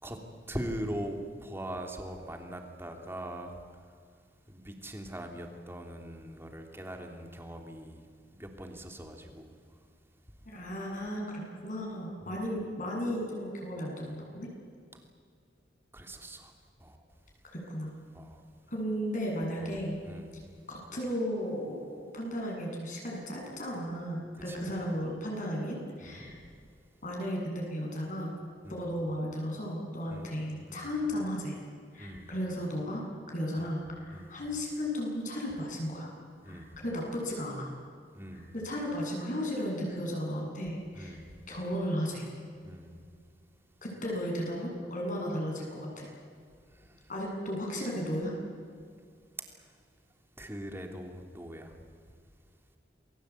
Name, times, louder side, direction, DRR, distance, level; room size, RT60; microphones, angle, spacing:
voice 1, 0.5-4.0 4.5-9.5 12.2-12.4 14.9-15.0 15.9-16.5 16.8-17.0 18.1-18.4 19.6-19.8 20.0-20.4 24.5-24.7 26.0-26.3 28.6-28.9 30.1-30.3 30.7-31.0 32.0-32.3 33.6-33.7 34.1-34.4 36.4-36.8 38.1-38.5 40.9-41.3 42.6-43.0 46.7-47.1 49.5-49.8 50.4-51.8, right 1 dB, 15° right, 3 dB, 3.2 m, -42 dB
voice 2, 10.4-14.5 17.5-17.9 18.7-20.0 20.7-26.4 27.0-28.3 28.7-31.6 31.9-36.1 36.4-37.7 38.5-41.2 41.5-42.3 43.8-46.1 47.1-48.3, equal, 50° left, -1 dB, 7.9 m, -35 dB
28.5 x 21.5 x 8.6 m, 2.2 s
head